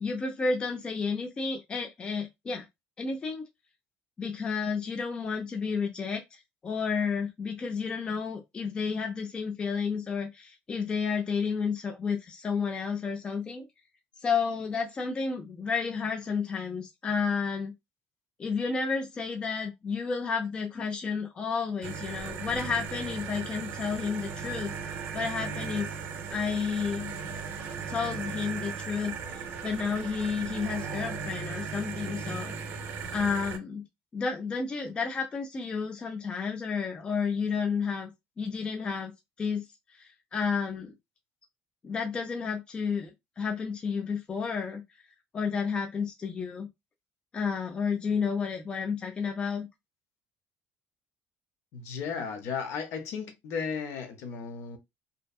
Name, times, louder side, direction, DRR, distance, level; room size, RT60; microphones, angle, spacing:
voice 1, 0.0-2.7 3.0-3.5 4.2-13.7 14.2-17.7 18.4-25.9 26.3-27.1 27.9-32.5 33.1-33.9 34.1-38.1 38.4-39.1 39.4-39.7 40.0-40.9 41.8-44.8 45.3-46.7 47.3-49.7, left 5 dB, 20° left, 0.4 m, -31 dB
sound 1, 21.8-33.6, right 6 dB, 50° right, 0.5 m, -37 dB
voice 2, 51.7-54.8, left 6 dB, 60° left, 0.6 m, -35 dB
2.6 x 2.2 x 2.3 m
cardioid pair, 165°, 5 cm